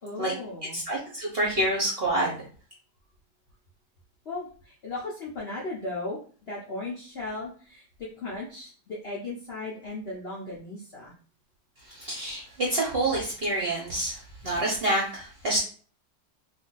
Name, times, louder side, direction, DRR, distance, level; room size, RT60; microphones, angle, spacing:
voice 1, 0.0-0.8 4.3-6.2 6.5-11.1, left 2 dB, 60° left, -5 dB, 0.6 m, -36 dB
voice 2, 0.7-2.4 11.9-15.6, right 1 dB, 50° right, -4 dB, 0.7 m, -27 dB
2.6 x 2.5 x 3.8 m, 0.43 s
omnidirectional pair, 1.9 m